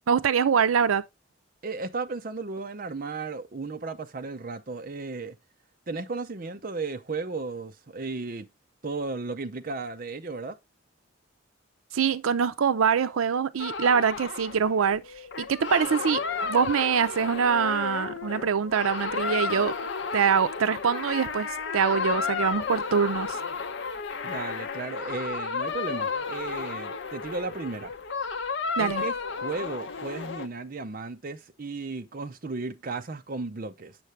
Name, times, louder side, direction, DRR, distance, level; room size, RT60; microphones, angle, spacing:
voice 1, 0.1-1.0 11.9-15.0 15.4-19.7 20.1-23.4 28.8-29.0, right 6 dB, 85° right, 0.5 m, -24 dB
voice 2, 1.6-5.4 5.9-8.5 8.8-10.6 24.2-27.9 28.8-34.0, right 3 dB, 45° right, 0.6 m, -35 dB
sound 1, 13.6-30.5, left 5 dB, 60° left, 0.8 m, -32 dB
7.8 x 6.6 x 3.2 m
head